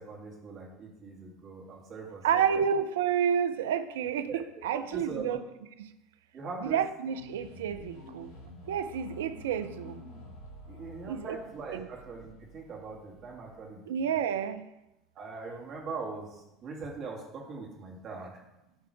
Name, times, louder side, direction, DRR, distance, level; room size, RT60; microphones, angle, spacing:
voice 1, 0.0-2.6 4.3-4.4 4.7-5.4 6.3-6.8 10.7-14.2 15.1-18.3, right 4 dB, 45° right, -2 dB, 2.3 m, -41 dB
voice 2, 2.2-5.4 5.8-5.9 6.6-8.3 8.7-10.0 11.0-11.4 11.7-11.9 13.9-14.6, right 8 dB, 75° right, 10 dB, 0.4 m, -30 dB
sound 1, 7.0-13.7, left 1 dB, 65° left, 3.2 m, -49 dB
10.5 x 3.7 x 4.8 m, 0.91 s
hypercardioid pair, 70°, 0 cm